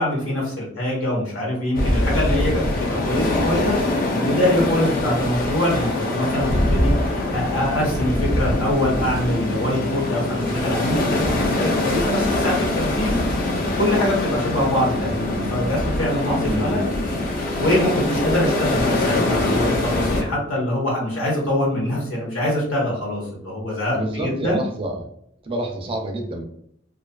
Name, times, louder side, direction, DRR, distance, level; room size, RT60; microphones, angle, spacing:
voice 1, 0.0-6.9 7.3-13.2 13.8-16.9 17.6-24.6, left 1 dB, 85° left, -3 dB, 1.1 m, -24 dB
sound 1, 1.7-20.2, left 1 dB, 45° left, 0.5 m, -23 dB
voice 2, 16.4-16.9 23.9-25.1 25.4-26.4, right 1 dB, 25° right, 2 dB, 0.4 m, -27 dB
2.4 x 2.4 x 2.2 m, 0.70 s
head